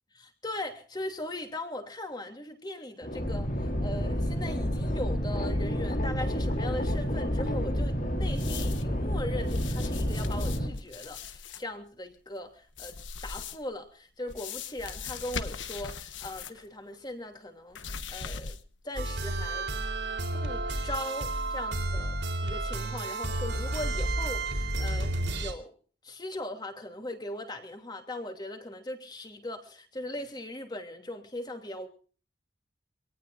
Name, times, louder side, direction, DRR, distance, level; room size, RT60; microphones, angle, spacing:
voice 1, 0.2-18.6 18.8-19.7 20.3-25.7 26.0-31.9, left 1 dB, 25° left, 5 dB, 3.0 m, -39 dB
sound 1, 3.0-10.7, equal, 45° left, 3.3 m, -29 dB
sound 2, 8.3-8.9 9.4-11.6 12.7-13.7 14.3-16.7 16.9-17.0 17.7-18.8 19.3-19.4, left 5 dB, 90° left, 1.3 m, -40 dB
sound 3, 19.0-25.5, right 2 dB, 75° right, 3.8 m, -31 dB
25.5 x 18.5 x 2.6 m, 0.41 s
head